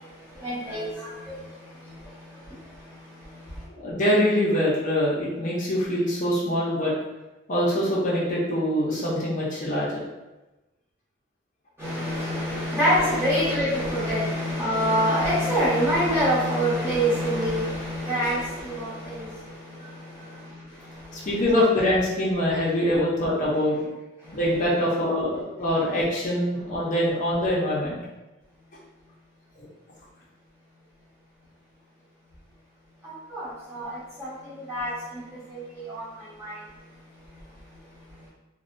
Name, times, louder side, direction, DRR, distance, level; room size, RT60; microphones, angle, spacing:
voice 1, 0.4-0.9 11.8-19.3 33.3-33.9 34.2-34.3 34.7-34.9 35.9-36.0 36.4-36.5, equal, 15° right, -10 dB, 0.9 m, -24 dB
voice 2, 3.8-6.9 7.5-10.0 19.8-19.9 21.1-23.8 24.3-28.0 29.6-29.7, left 1 dB, 40° left, -6 dB, 0.5 m, -24 dB
2.6 x 2.1 x 2.4 m, 1.1 s
head